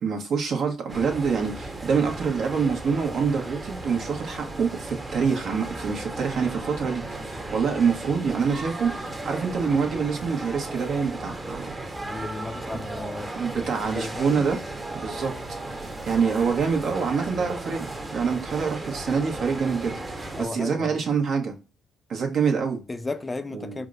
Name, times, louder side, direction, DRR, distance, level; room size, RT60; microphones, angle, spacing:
voice 1, 0.0-11.7 13.3-14.6 14.9-15.3 15.7-15.8 16.1-21.5 22.1-22.8 23.5-23.8, right 5 dB, 65° right, 1.0 m, -26 dB
sound 1, 0.9-20.4, right 2 dB, 30° right, 0.9 m, -35 dB
voice 2, 12.1-14.4 20.4-21.0 22.9-23.9, left 2 dB, 25° left, 0.4 m, -35 dB
4.8 x 2.1 x 2.4 m
supercardioid pair, 55°, 0 cm